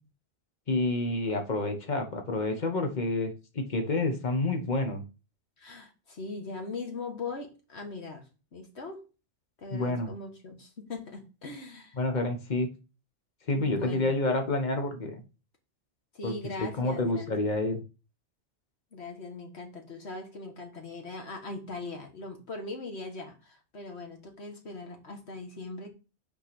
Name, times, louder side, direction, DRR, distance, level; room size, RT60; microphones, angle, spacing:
voice 1, 0.7-5.0 9.7-10.1 12.0-12.7 13.5-15.2 16.2-16.3 16.6-17.8, left 2 dB, 45° left, 5 dB, 1.3 m, -29 dB
voice 2, 5.6-9.0 9.6-12.0 13.5-14.2 16.1-17.6 18.9-25.9, left 3 dB, 90° left, 3 dB, 1.9 m, -40 dB
5.9 x 4.5 x 6.0 m, 0.32 s
omnidirectional pair, 1.1 m